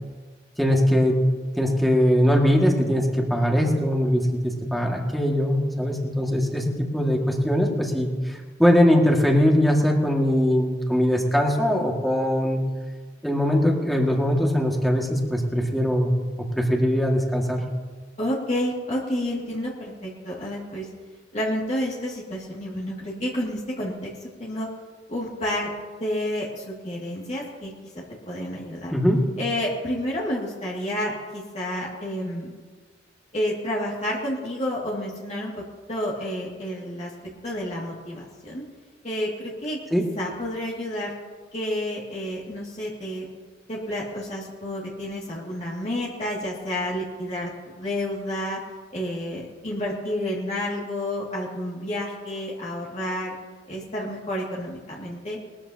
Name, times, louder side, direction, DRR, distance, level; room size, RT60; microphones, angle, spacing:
voice 1, 0.6-1.2 1.6-12.6 13.2-16.1 16.4-17.6 28.9-29.3 39.9-40.0, equal, ahead, -1 dB, 2.1 m, -21 dB
voice 2, 18.2-20.9 21.3-24.7 25.1-25.7 26.0-27.7 28.3-28.9 29.4-32.5 33.3-35.6 35.9-37.1 37.4-38.6 39.0-39.8 40.2-41.1 41.5-43.3 43.7-48.6 48.9-53.3 53.7-55.4, left 1 dB, 40° left, -5 dB, 2.4 m, -30 dB
21.5 x 14.0 x 2.9 m, 1.5 s
head